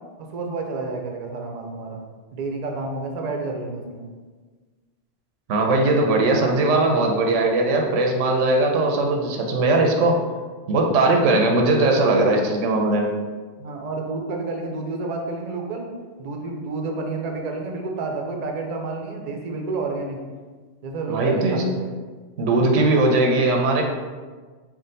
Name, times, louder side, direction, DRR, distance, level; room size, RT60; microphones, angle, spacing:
voice 1, 0.2-2.0 2.3-4.0 9.7-9.9 13.6-15.9 16.2-20.2 20.8-21.9, right 3 dB, 55° right, 2 dB, 0.5 m, -30 dB
voice 2, 5.5-10.2 10.7-13.1 21.1-21.6 22.4-23.8, right 2 dB, 90° right, 1 dB, 1.0 m, -19 dB
3.6 x 2.3 x 3.9 m, 1.4 s
omnidirectional pair, 1.2 m